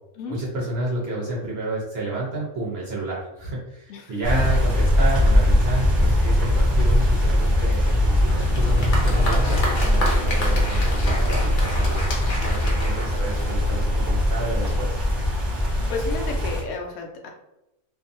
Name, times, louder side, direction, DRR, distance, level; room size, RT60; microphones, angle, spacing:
voice 1, 0.3-12.0 12.4-15.0, right 2 dB, 55° right, -4 dB, 0.7 m, -30 dB
voice 2, 3.9-4.6 15.6-17.3, left 3 dB, 75° left, 1 dB, 1.0 m, -33 dB
sound 1, 4.2-16.6, left 1 dB, ahead, 0.6 m, -21 dB
Applause, 8.3-13.9, equal, 55° left, 0.5 m, -30 dB
2.6 x 2.4 x 2.5 m, 0.93 s
omnidirectional pair, 1.6 m